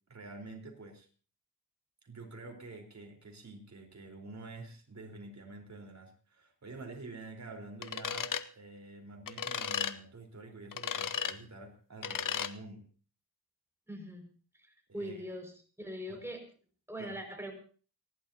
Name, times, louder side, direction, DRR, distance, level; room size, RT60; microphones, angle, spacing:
voice 1, 0.1-1.1 2.0-12.8 15.0-15.3 16.1-16.2 17.0-17.2, right 2 dB, 40° right, 3 dB, 4.2 m, -48 dB
sound 1, 7.8-8.4 9.3-9.9 10.7-11.3 12.0-12.5, left 7 dB, 50° left, 0.8 m, -34 dB
voice 2, 13.9-14.2 14.9-16.4 16.9-17.5, equal, 5° right, 2 dB, 5.5 m, -41 dB
30.0 x 11.5 x 2.8 m, 0.39 s
cardioid pair, 80°, 41 cm